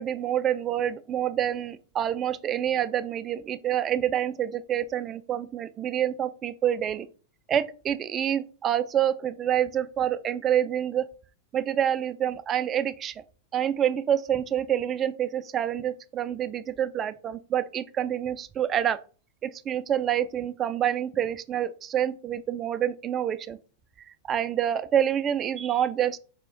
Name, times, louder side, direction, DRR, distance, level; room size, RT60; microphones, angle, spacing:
voice 1, 0.0-7.1 7.5-11.1 11.5-13.2 13.5-19.0 19.4-23.6 24.1-26.2, right 10 dB, 25° right, 0.3 m, -27 dB
4.9 x 2.4 x 3.8 m
figure-of-eight pair, 90°, 0 cm